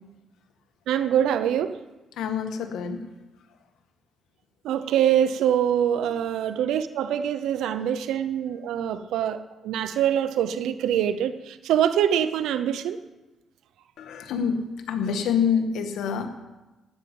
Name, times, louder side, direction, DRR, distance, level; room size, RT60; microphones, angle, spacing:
voice 1, 0.9-1.8 4.6-13.0, right 10 dB, 85° right, 11 dB, 0.6 m, -24 dB
voice 2, 2.2-3.0 6.1-6.2 14.0-16.3, left 7 dB, 80° left, 5 dB, 1.7 m, -27 dB
14.0 x 6.0 x 9.1 m, 1.1 s
cardioid pair, 90°, 0 cm